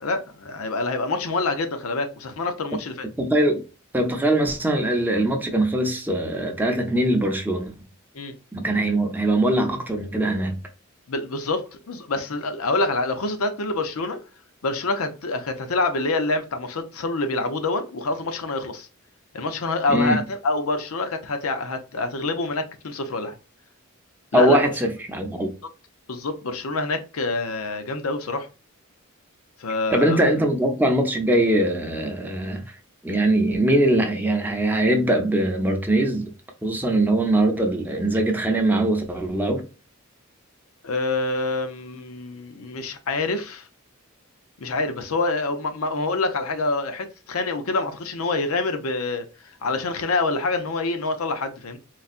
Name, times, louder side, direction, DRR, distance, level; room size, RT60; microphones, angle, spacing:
voice 1, 0.0-3.1 8.1-8.3 11.1-14.2 14.6-18.9 19.3-23.3 24.3-24.6 26.1-28.5 29.6-30.3 40.8-43.7 44.6-49.3 49.6-51.8, left 3 dB, 75° left, 0.7 m, -26 dB
voice 2, 3.2-3.6 3.9-7.7 8.5-10.6 19.9-20.2 24.3-25.5 29.9-32.6 33.0-36.3 36.6-39.6, right 1 dB, 10° right, 0.6 m, -21 dB
4.0 x 2.2 x 2.4 m
head